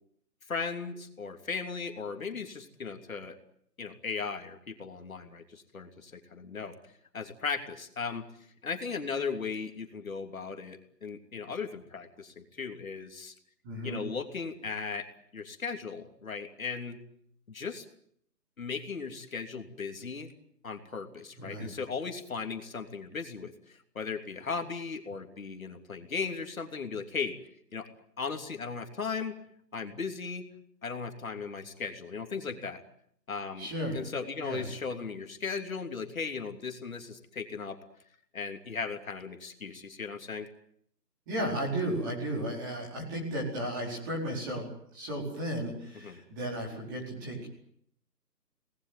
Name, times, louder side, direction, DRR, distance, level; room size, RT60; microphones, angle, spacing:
voice 1, 0.5-3.4 3.8-6.8 7.1-8.2 8.6-13.3 13.8-15.0 15.3-17.0 17.5-17.8 18.6-20.3 20.6-27.3 27.7-27.9 28.2-29.3 29.7-30.4 30.8-32.8 33.3-33.7 33.9-37.8 38.3-40.5 46.0-46.2, left 5 dB, 55° left, 5 dB, 3.1 m, -37 dB
voice 2, 13.6-14.0 21.4-21.7 33.6-34.0 34.4-34.7 41.3-44.6 44.9-47.5, right 1 dB, 10° right, -2 dB, 4.6 m, -34 dB
27.0 x 19.5 x 9.2 m, 0.69 s
hypercardioid pair, 180°, 49 cm